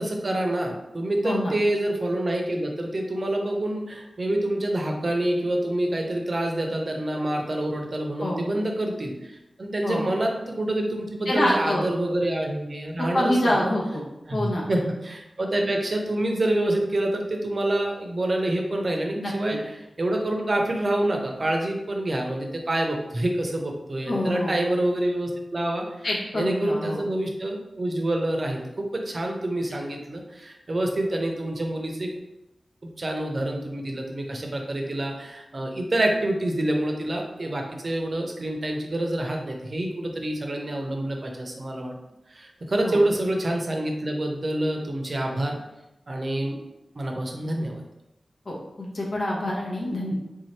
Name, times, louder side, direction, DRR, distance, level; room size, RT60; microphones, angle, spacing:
voice 1, 0.0-13.7 14.3-26.1 26.3-32.1 33.0-41.9 42.3-45.6 46.1-46.6 46.9-47.8, right 1 dB, 50° right, 1 dB, 0.7 m, -27 dB
voice 2, 11.3-11.9 13.0-14.0 14.3-14.6 19.1-19.6 24.1-24.5 26.0-27.0 42.8-43.0 48.5-50.1, left 1 dB, 65° left, -3 dB, 1.0 m, -26 dB
3.5 x 2.8 x 3.2 m, 0.94 s
cardioid pair, 50°, 0 cm